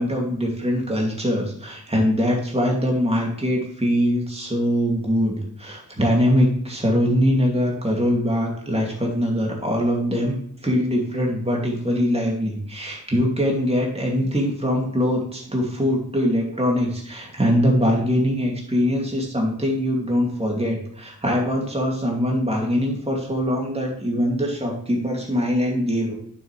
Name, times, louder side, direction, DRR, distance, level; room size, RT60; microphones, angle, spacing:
voice 1, 0.0-10.4 10.6-26.1, equal, 15° right, -1 dB, 2.6 m, -22 dB
8.8 x 7.4 x 3.4 m, 0.65 s
cardioid pair, 40°, 40 cm